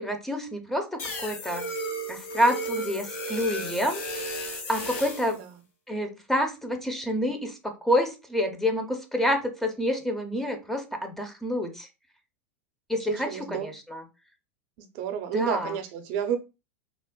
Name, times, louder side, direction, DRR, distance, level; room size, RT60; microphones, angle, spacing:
voice 1, 0.0-1.6 2.1-4.0 4.7-5.4 5.9-11.9 12.9-14.0 15.3-15.7, equal, 5° left, 0.5 m, -28 dB
sound 1, 1.0-5.4, right 1 dB, 60° left, 1.1 m, -34 dB
voice 2, 13.1-13.7 14.8-16.4, right 7 dB, 55° right, 0.5 m, -30 dB
3.3 x 2.1 x 2.2 m
supercardioid pair, 135°, 7 cm